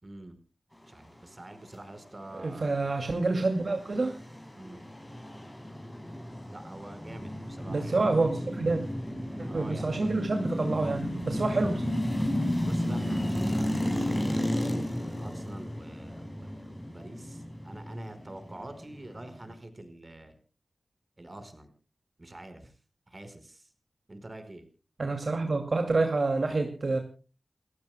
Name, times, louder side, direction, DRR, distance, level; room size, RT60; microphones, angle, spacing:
voice 1, 0.0-0.4 0.9-2.8 4.5-4.8 6.5-8.2 9.5-10.1 12.6-14.6 14.9-20.4 21.2-21.7 22.2-22.7 23.1-23.7 24.1-24.6, right 1 dB, 35° right, 9 dB, 4.8 m, -46 dB
voice 2, 2.4-4.2 7.7-8.8 9.4-11.9 25.0-27.0, right 3 dB, 60° right, 5 dB, 2.4 m, -28 dB
sound 1, 2.8-19.6, left 1 dB, 15° left, 6.3 m, -33 dB
30.0 x 15.0 x 2.2 m, 0.35 s
wide cardioid pair, 65°, 0 cm